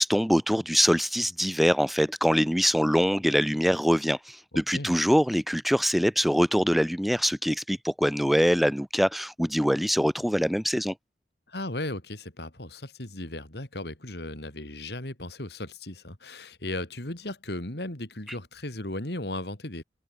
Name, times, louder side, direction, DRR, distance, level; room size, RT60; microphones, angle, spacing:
voice 1, 0.0-10.9, equal, ahead, 5.3 m, -24 dB
voice 2, 11.5-19.8, left 1 dB, 65° left, 3.7 m, -36 dB
head